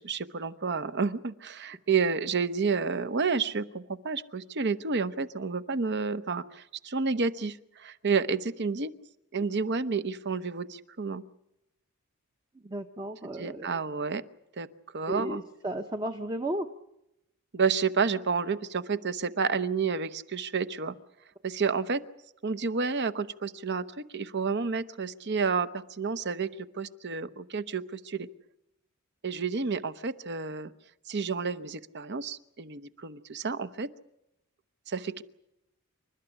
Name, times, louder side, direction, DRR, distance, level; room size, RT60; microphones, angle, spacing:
voice 1, 0.0-8.9 9.3-11.2 13.4-14.2 14.6-14.7 14.9-15.4 17.5-20.9 21.4-22.0 22.4-26.5 26.7-28.3 29.2-30.7 31.1-33.9 34.9-35.2, right 5 dB, 50° right, 13 dB, 0.8 m, -30 dB
voice 2, 12.6-13.8 15.1-16.7, right 1 dB, 20° right, 5 dB, 0.8 m, -34 dB
28.0 x 12.5 x 9.9 m, 0.87 s
head